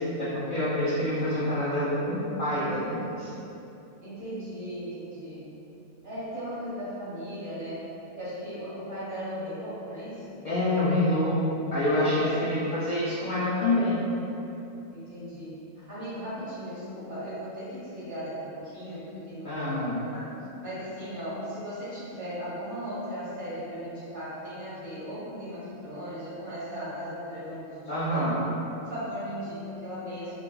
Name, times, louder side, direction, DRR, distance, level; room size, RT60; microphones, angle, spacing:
voice 1, 0.2-3.3 10.4-11.4 11.7-14.0 19.4-20.0 27.9-28.4, left 1 dB, 75° left, -11 dB, 0.4 m, -26 dB
voice 2, 4.0-5.5 6.0-7.8 8.2-10.4 11.9-12.3 14.9-20.3 20.6-28.3 28.7-30.3, equal, 40° right, -12 dB, 1.2 m, -37 dB
4.0 x 2.2 x 2.2 m, 2.9 s
omnidirectional pair, 1.5 m